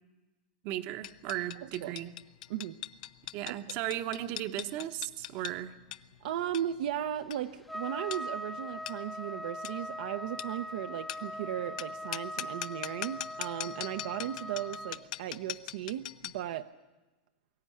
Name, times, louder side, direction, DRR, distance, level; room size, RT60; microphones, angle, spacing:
voice 1, 0.6-2.1 3.3-5.7, right 13 dB, 40° right, 10 dB, 1.0 m, -36 dB
sound 1, 1.0-16.5, left 14 dB, 60° left, 0.7 m, -43 dB
voice 2, 1.6-1.9 2.5-2.8 3.5-3.8 6.2-16.7, right 11 dB, 60° right, 7 dB, 0.8 m, -36 dB
Trumpet, 7.7-15.0, equal, ahead, 0.7 m, -41 dB
23.0 x 14.0 x 9.7 m, 1.2 s
supercardioid pair, 165°, 5 cm